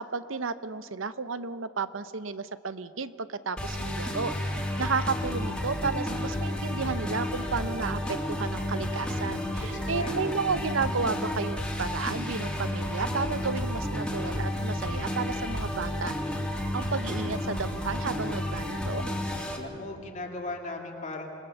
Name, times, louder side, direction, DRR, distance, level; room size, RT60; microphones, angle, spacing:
voice 1, 0.0-16.1 16.7-19.0, right 4 dB, 80° right, 13 dB, 0.9 m, -32 dB
sound 1, 3.6-19.6, left 1 dB, 5° left, 2.9 m, -31 dB
voice 2, 9.4-10.2 19.5-21.4, left 2 dB, 40° left, 0 dB, 2.3 m, -38 dB
27.0 x 21.0 x 7.0 m, 2.5 s
head